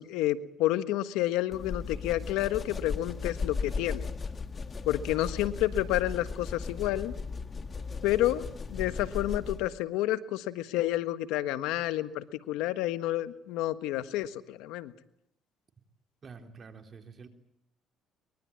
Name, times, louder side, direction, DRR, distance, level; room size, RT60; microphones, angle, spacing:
voice 1, 0.0-4.0 4.8-7.1 8.0-14.9, left 14 dB, 90° left, 12 dB, 1.4 m, -30 dB
sound 1, 1.5-9.8, left 4 dB, 35° left, 1.6 m, -36 dB
voice 2, 16.2-17.3, right 5 dB, 40° right, 5 dB, 3.7 m, -48 dB
24.0 x 22.0 x 8.7 m, 0.77 s
cardioid pair, 90°, 0 cm